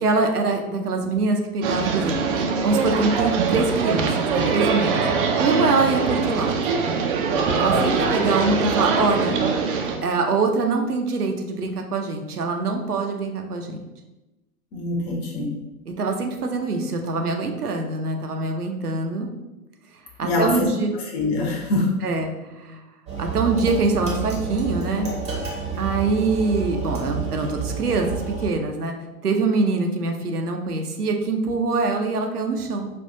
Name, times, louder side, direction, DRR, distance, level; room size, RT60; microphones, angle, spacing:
voice 1, 0.0-5.0 5.4-6.5 7.6-9.4 10.0-13.8 15.9-19.3 20.2-20.9 22.0-22.8 23.2-25.1 25.8-28.9 29.2-32.9, right 3 dB, 80° right, 3 dB, 0.8 m, -24 dB
sound 1, 1.6-10.0, right 5 dB, 40° right, 0.6 m, -22 dB
voice 2, 14.7-15.5 20.2-20.7 20.9-21.9, left 2 dB, 40° left, -1 dB, 1.1 m, -24 dB
sound 2, 23.1-28.5, right 5 dB, 15° right, 0.9 m, -29 dB
5.3 x 2.4 x 2.7 m, 1.0 s
figure-of-eight pair, 105°, 45 cm